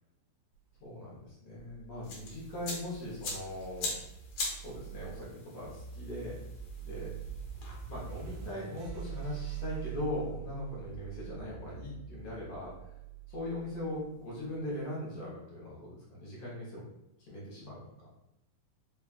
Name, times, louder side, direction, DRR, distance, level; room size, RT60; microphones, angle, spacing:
voice 1, 0.8-3.9 4.6-6.4 6.8-7.1 7.9-12.7 13.3-16.8 17.2-18.1, left 1 dB, 65° left, -7 dB, 1.7 m, -40 dB
sound 1, 1.5-14.7, right 9 dB, 90° right, 1.7 m, -45 dB
sound 2, 2.0-8.5, left 2 dB, 85° left, 1.4 m, -42 dB
5.5 x 2.4 x 2.3 m, 0.88 s
omnidirectional pair, 4.0 m